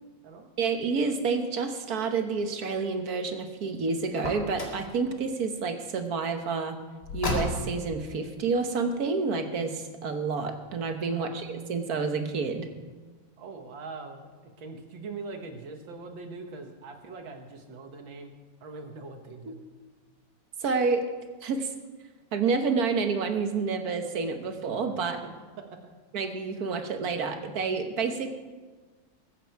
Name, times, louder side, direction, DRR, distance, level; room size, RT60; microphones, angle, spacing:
voice 1, 0.0-0.5 11.0-11.5 13.4-18.3 18.6-19.6 25.2-25.3 25.6-25.9, right 3 dB, 85° right, 5 dB, 2.1 m, -42 dB
voice 2, 0.6-6.8 7.1-12.7 19.5-19.6 20.6-21.1 21.4-21.7 22.3-25.2 26.1-28.3, right 4 dB, 55° right, 6 dB, 1.5 m, -29 dB
Car, 4.1-4.9 7.0-7.9, left 2 dB, 60° left, 2.7 m, -32 dB
21.0 x 8.4 x 4.6 m, 1.3 s
omnidirectional pair, 2.1 m